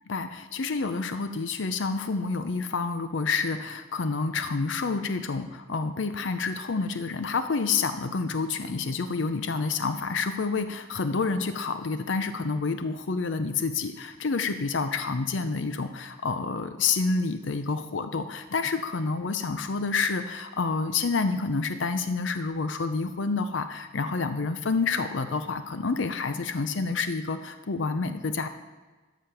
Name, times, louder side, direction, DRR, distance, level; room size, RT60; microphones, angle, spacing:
voice 1, 0.1-28.5, left 4 dB, 80° left, 9 dB, 0.6 m, -28 dB
13.5 x 5.1 x 5.6 m, 1.3 s
head